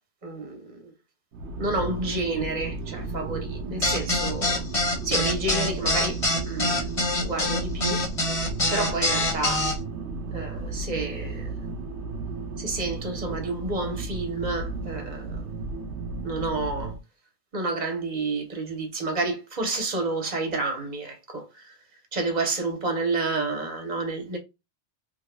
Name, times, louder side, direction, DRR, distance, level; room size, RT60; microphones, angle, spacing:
voice 1, 0.2-0.9 1.6-4.6 5.0-6.9 7.2-8.0 8.7-9.7 10.3-11.5 12.6-15.4 16.2-17.0 17.5-21.7 22.1-24.4, right 2 dB, 40° right, 1.2 m, -30 dB
sound 1, 1.3-17.0, right 3 dB, 85° right, 1.0 m, -34 dB
sound 2, 3.8-9.7, left 2 dB, 35° left, 0.9 m, -25 dB
3.5 x 3.3 x 2.2 m
omnidirectional pair, 1.1 m